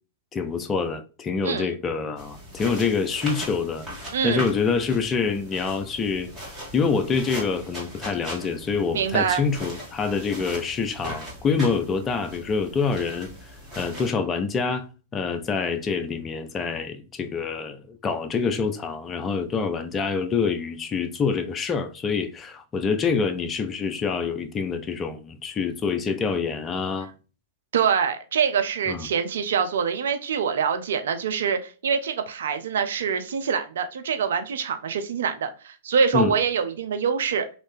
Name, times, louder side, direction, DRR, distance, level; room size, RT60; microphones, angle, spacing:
voice 1, 0.3-6.3 6.7-13.3 13.8-14.9 15.1-27.1 28.9-29.1 36.1-36.3, left 5 dB, 25° left, 0.5 m, -26 dB
sound 1, 2.2-14.1, equal, 10° right, 1.9 m, -39 dB
voice 2, 4.1-4.5 8.9-9.4 27.7-37.6, right 6 dB, 70° right, 0.5 m, -25 dB
3.2 x 2.7 x 3.3 m
hypercardioid pair, 105°, 0 cm